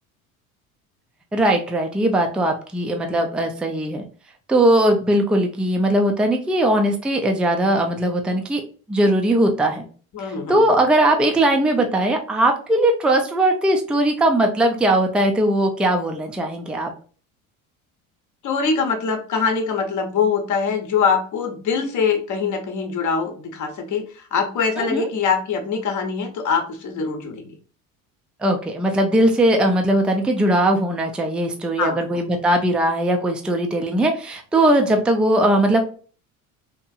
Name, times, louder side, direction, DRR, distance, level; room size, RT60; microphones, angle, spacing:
voice 1, 1.3-4.0 4.5-8.6 8.9-9.8 10.5-16.9 24.8-25.1 28.4-35.8, right 1 dB, ahead, 3 dB, 0.4 m, -19 dB
voice 2, 10.1-10.7 18.4-27.4 31.8-32.2, left 5 dB, 45° left, 5 dB, 0.9 m, -23 dB
2.9 x 2.5 x 2.3 m, 0.40 s
hypercardioid pair, 75°, 41 cm